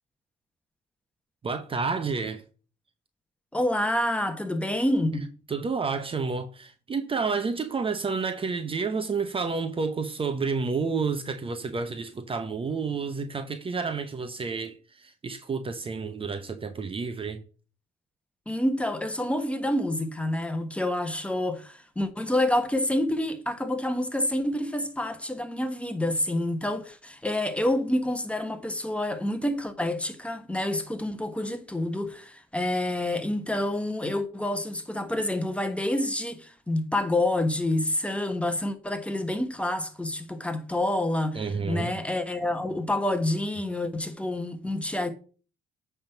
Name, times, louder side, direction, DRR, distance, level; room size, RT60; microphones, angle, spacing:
voice 1, 1.4-2.4 5.5-17.4 41.3-41.9, right 4 dB, 35° right, 0.9 m, -30 dB
voice 2, 3.5-5.3 18.5-45.1, left 1 dB, 5° left, 1.3 m, -28 dB
8.9 x 3.6 x 5.8 m
supercardioid pair, 70°, 16 cm